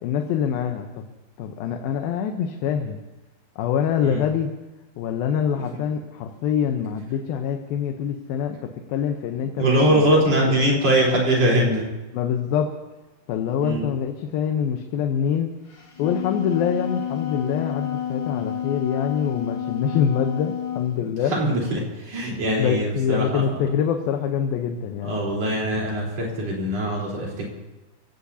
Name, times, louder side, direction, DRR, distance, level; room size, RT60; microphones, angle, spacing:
voice 1, 0.0-0.9 1.4-3.0 3.6-4.5 5.0-10.0 10.5-10.6 12.1-12.7 13.3-15.5 16.0-21.3 22.6-25.2, left 8 dB, 85° left, 4 dB, 2.7 m, -25 dB
voice 2, 9.6-11.9 13.6-13.9 21.3-23.4 25.0-27.5, right 1 dB, 45° right, -3 dB, 4.8 m, -22 dB
Wind instrument woodwind instrument, 15.7-20.9, left 9 dB, 30° left, 3.3 m, -30 dB
27.5 x 17.0 x 2.8 m, 1.1 s
omnidirectional pair, 4.2 m